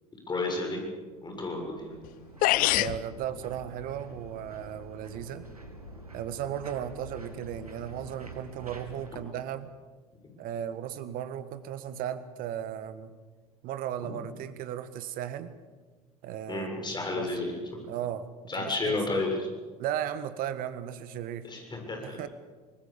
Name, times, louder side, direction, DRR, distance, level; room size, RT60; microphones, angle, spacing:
voice 1, 0.3-0.8 1.2-2.0 14.0-14.1 16.5-17.8 18.5-19.5 21.4-22.2, left 2 dB, 25° left, 3 dB, 7.1 m, -32 dB
sound 1, 1.1-9.1, right 1 dB, 90° right, 2.2 m, -47 dB
sound 2, 2.0-2.1 2.4-3.0, left 17 dB, 50° left, 0.8 m, -23 dB
voice 2, 2.8-5.5 6.1-9.7 10.4-13.1 13.6-15.5 16.2-16.7 17.1-17.3 17.8-18.3 18.6-19.0 19.8-21.5 22.0-22.3, right 10 dB, 50° right, 13 dB, 1.7 m, -36 dB
25.5 x 20.0 x 7.1 m, 1.4 s
figure-of-eight pair, 65°, 19 cm